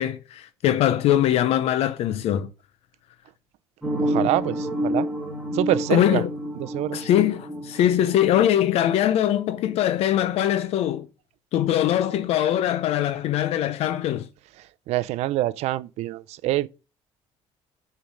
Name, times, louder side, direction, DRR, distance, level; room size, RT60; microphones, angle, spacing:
voice 1, 0.0-2.5 5.9-6.3 6.9-11.1 11.5-14.3, left 11 dB, 65° left, 0.6 m, -22 dB
sound 1, 3.8-8.6, equal, ahead, 1.9 m, -29 dB
voice 2, 4.0-5.1 5.5-6.2 6.6-7.0 14.9-16.7, right 15 dB, 75° right, 0.5 m, -25 dB
6.9 x 4.6 x 5.1 m
cardioid pair, 155°, 11 cm